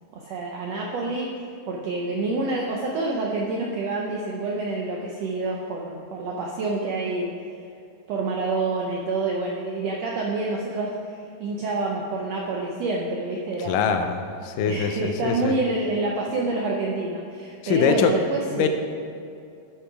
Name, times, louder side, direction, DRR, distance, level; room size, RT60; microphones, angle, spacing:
voice 1, 0.1-7.3 8.1-13.9 14.6-18.7, right 3 dB, 80° right, -1 dB, 1.5 m, -28 dB
voice 2, 13.6-15.6 17.6-18.2 18.5-18.7, left 6 dB, 85° left, 7 dB, 2.3 m, -23 dB
12.0 x 5.7 x 4.8 m, 2.5 s
omnidirectional pair, 3.8 m